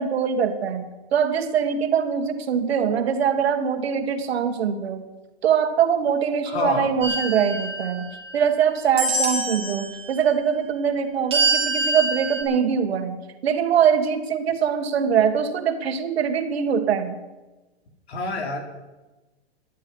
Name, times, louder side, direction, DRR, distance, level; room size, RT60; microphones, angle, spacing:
voice 1, 0.0-5.0 5.4-17.1, right 7 dB, 75° right, 8 dB, 1.9 m, -23 dB
voice 2, 6.5-6.9 18.1-18.7, left 3 dB, 85° left, 2 dB, 3.8 m, -27 dB
sound 1, 7.0-8.5 9.0-9.8 11.3-12.4, right 2 dB, 15° right, 3.3 m, -25 dB
11.5 x 8.4 x 9.8 m, 1.1 s
hypercardioid pair, 160°, 31 cm